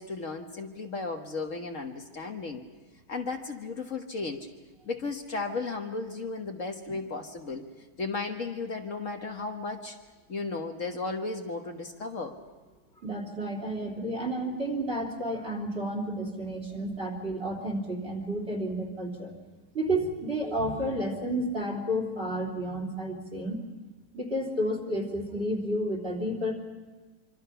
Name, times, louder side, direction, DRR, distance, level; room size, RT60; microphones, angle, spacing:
voice 1, 0.0-2.6 3.1-4.5 4.9-7.7 8.0-10.0 10.3-12.4, left 3 dB, 50° left, 4 dB, 1.7 m, -35 dB
voice 2, 13.0-19.3 19.7-23.6 24.1-26.6, right 1 dB, 40° right, 4 dB, 3.7 m, -31 dB
25.5 x 25.5 x 5.7 m, 1.3 s
omnidirectional pair, 1.7 m